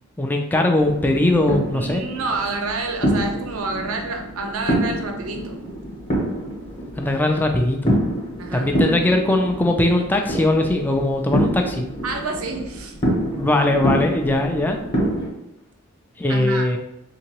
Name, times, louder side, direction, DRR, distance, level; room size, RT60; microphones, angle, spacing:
voice 1, 0.2-2.0 7.0-8.0 8.5-11.8 13.4-14.8 16.2-16.8, left 1 dB, 10° left, 3 dB, 0.3 m, -20 dB
sound 1, 0.8-15.3, equal, 25° left, 0.8 m, -26 dB
voice 2, 1.7-5.5 8.4-8.7 12.0-13.0 16.3-16.7, right 3 dB, 85° right, 4 dB, 0.6 m, -28 dB
3.5 x 2.9 x 2.9 m, 0.83 s
head